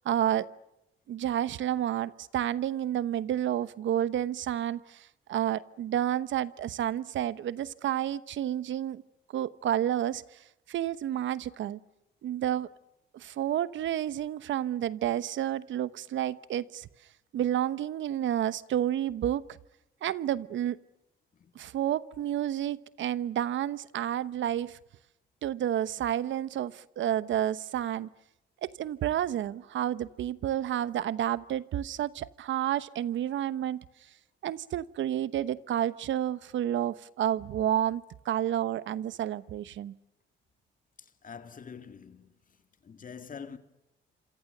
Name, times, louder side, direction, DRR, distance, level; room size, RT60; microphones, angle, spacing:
voice 1, 0.0-0.5 1.1-9.0 9.3-10.4 10.7-11.8 12.2-12.7 13.1-16.9 17.3-19.4 20.0-20.8 21.5-24.8 25.4-28.1 28.6-33.8 34.4-39.9, right 11 dB, 70° right, 1.0 m, -30 dB
voice 2, 41.0-43.6, left 6 dB, 45° left, 2.1 m, -46 dB
27.0 x 27.0 x 6.7 m
cardioid pair, 90°, 20 cm